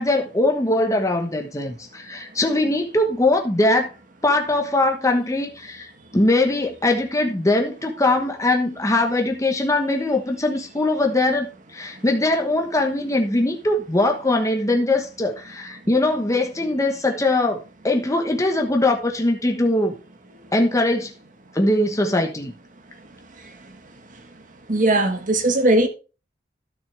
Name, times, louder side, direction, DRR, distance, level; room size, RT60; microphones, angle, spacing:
voice 1, 0.0-3.9 4.2-17.6 17.8-19.9 20.5-21.1 21.5-22.5, left 2 dB, 20° left, 1.2 m, -21 dB
voice 2, 24.7-25.9, right 2 dB, 50° right, 1.4 m, -18 dB
12.0 x 6.6 x 3.4 m
head